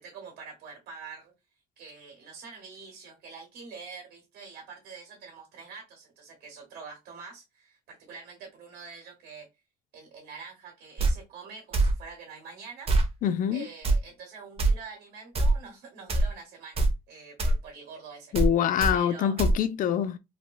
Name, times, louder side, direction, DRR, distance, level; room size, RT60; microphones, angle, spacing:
voice 1, 0.0-1.3 1.8-9.5 9.9-12.9 13.5-18.3 18.9-19.4, right 5 dB, 65° right, 1.5 m, -45 dB
sound 1, 11.0-11.1 11.7-11.9 12.9-13.1 13.8-14.0 14.6-14.7 15.3-15.5 16.1-16.3 16.8-16.9 17.4-17.6 18.3-18.5 18.8-18.9 19.4-19.5, right 2 dB, 35° right, 0.7 m, -22 dB
voice 2, 13.2-13.7 18.3-20.2, left 9 dB, 55° left, 0.4 m, -25 dB
3.3 x 2.3 x 2.3 m
cardioid pair, 110°, 17 cm